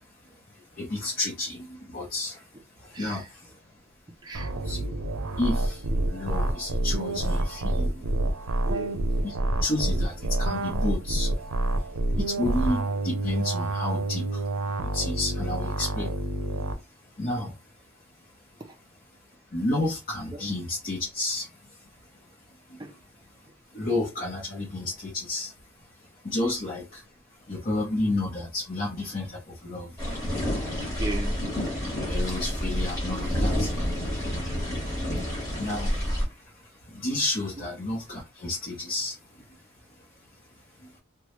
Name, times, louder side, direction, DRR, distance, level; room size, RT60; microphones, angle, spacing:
voice 1, 0.8-2.4 2.8-3.5 4.6-4.8 5.4-8.0 8.5-8.6 9.2-11.3 12.1-14.4 14.8-16.1 17.2-17.5 19.5-21.5 22.7-22.8 23.7-25.5 26.2-27.0 27.5-30.0 32.1-33.7 35.6-36.4 36.9-39.2, left 2 dB, 40° left, 0.8 m, -31 dB
voice 2, 2.9-3.3 4.2-4.5 8.6-9.0 18.6-18.7 20.3-20.4 22.8-22.9 26.4-26.5 31.0-31.4 37.6-37.7, right 2 dB, 20° right, 0.5 m, -36 dB
sound 1, 4.3-16.7, right 2 dB, 85° right, 0.5 m, -28 dB
sound 2, 30.0-36.3, equal, 15° left, 1.1 m, -28 dB
3.0 x 2.2 x 3.0 m
head